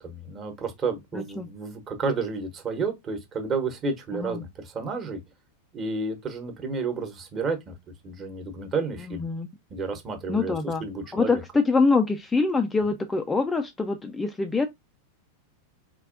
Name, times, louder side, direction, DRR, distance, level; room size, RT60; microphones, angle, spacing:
voice 1, 0.0-5.2 5.7-7.7 8.0-9.3 9.7-11.4, right 4 dB, 30° right, 1.2 m, -31 dB
voice 2, 1.1-1.5 4.1-4.4 9.1-9.5 10.3-10.8 11.1-14.7, left 4 dB, 10° left, 0.4 m, -25 dB
4.3 x 3.1 x 2.5 m
figure-of-eight pair, 90°, 0 cm